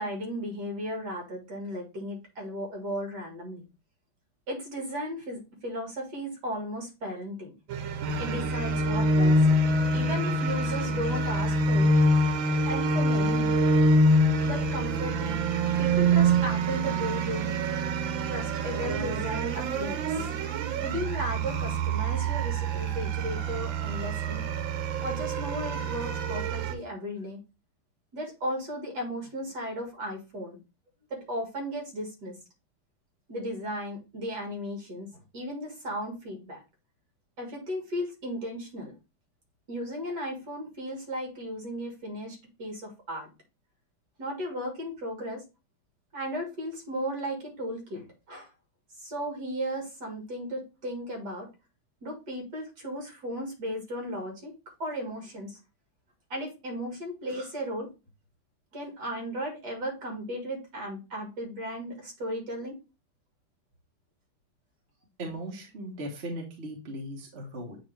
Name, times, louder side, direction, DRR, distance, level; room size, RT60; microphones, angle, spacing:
voice 1, 0.0-3.6 4.5-7.5 8.2-9.6 9.9-11.9 12.6-13.5 14.4-15.4 15.8-17.5 18.3-20.3 20.8-24.5 25.0-27.4 28.1-30.6 31.1-32.3 33.3-36.6 37.4-38.9 39.7-43.3 44.2-45.4 46.1-48.5 49.0-51.5 52.0-54.5 54.8-55.6 56.3-57.9 58.7-62.8, equal, 55° right, 2 dB, 2.5 m, -35 dB
sound 1, 7.7-26.7, right 1 dB, 80° right, 1.6 m, -26 dB
voice 2, 65.2-67.8, right 1 dB, 35° right, 0 dB, 1.4 m, -38 dB
8.1 x 3.6 x 3.3 m, 0.28 s
omnidirectional pair, 2.1 m